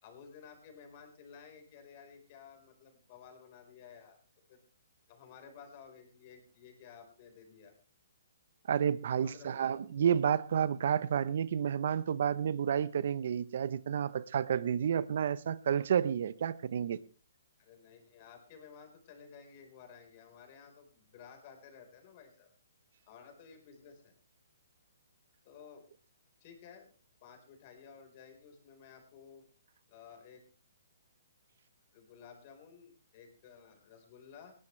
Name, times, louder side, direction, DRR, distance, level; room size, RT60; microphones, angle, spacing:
voice 1, 0.0-4.2 4.5-4.6 5.1-7.7 9.2-9.8 17.6-22.5 23.1-24.1 25.4-25.9 26.4-26.9 27.2-29.4 29.9-30.4 31.9-34.5, left 6 dB, 35° left, 4.5 m, -54 dB
voice 2, 8.7-17.0, right 8 dB, 55° right, 0.9 m, -30 dB
19.5 x 14.5 x 3.3 m
hypercardioid pair, 155°, 0 cm